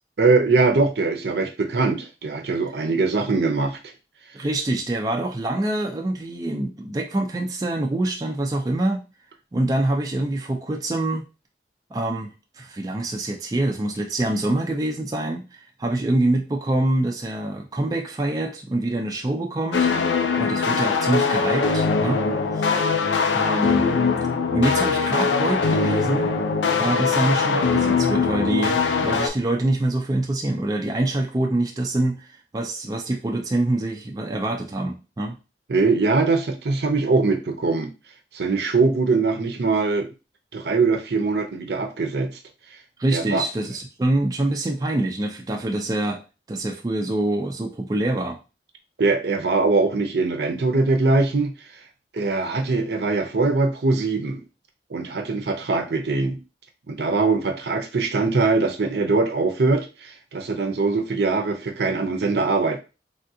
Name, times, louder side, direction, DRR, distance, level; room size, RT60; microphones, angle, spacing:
voice 1, 0.2-3.8 35.7-37.9 38.3-40.1 40.5-42.3 43.1-43.4 49.0-51.5 52.1-54.4 54.9-56.4 56.9-62.8, right 3 dB, 65° right, 5 dB, 0.6 m, -22 dB
voice 2, 4.3-9.0 9.5-11.2 11.9-19.9 20.4-22.2 22.5-22.9 23.3-23.9 24.5-26.3 26.8-35.4 43.0-46.2 46.5-48.4, right 1 dB, 20° right, 2 dB, 0.3 m, -25 dB
sound 1, 19.7-29.3, left 5 dB, 85° left, 0.4 m, -21 dB
3.5 x 2.4 x 2.6 m, 0.30 s
head